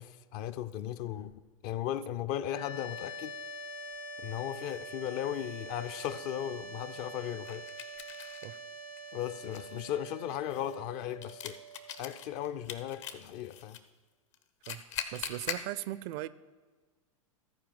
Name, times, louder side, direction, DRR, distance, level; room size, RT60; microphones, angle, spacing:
voice 1, 0.0-3.3 4.2-7.7 9.1-11.6 12.0-13.8, left 11 dB, 40° left, 0.5 m, -36 dB
sound 1, 0.7-1.4 3.8-4.0 4.7-4.8 7.5-8.5 9.0-13.8 14.3-15.7, left 9 dB, 60° left, 0.9 m, -43 dB
sound 2, 2.5-13.6, right 1 dB, 85° left, 1.2 m, -45 dB
voice 2, 15.1-16.3, right 15 dB, 45° right, 0.4 m, -38 dB
13.5 x 4.8 x 6.9 m
figure-of-eight pair, 95°, 18 cm